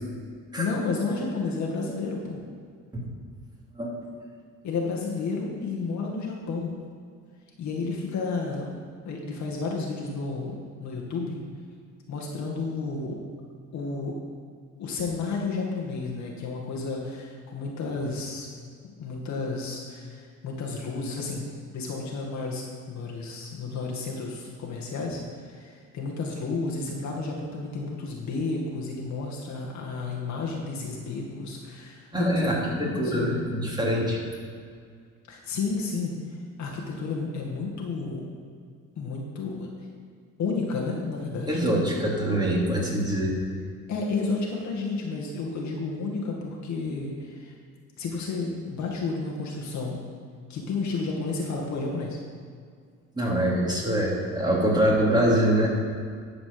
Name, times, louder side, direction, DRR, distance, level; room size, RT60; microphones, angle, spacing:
voice 1, 0.6-2.4 4.6-6.7 7.6-8.7 9.1-11.4 12.1-13.2 13.7-14.2 14.8-18.5 18.8-33.3 35.3-36.1 36.6-38.3 39.0-39.7 40.4-41.6 43.9-47.5 48.0-50.0 50.5-52.2, left 3 dB, 60° left, -2 dB, 2.0 m, -31 dB
voice 2, 32.1-34.2 41.5-43.3 53.2-55.7, right 1 dB, 15° right, -4 dB, 3.0 m, -24 dB
11.5 x 5.1 x 6.8 m, 2.1 s
cardioid pair, 95°, 32 cm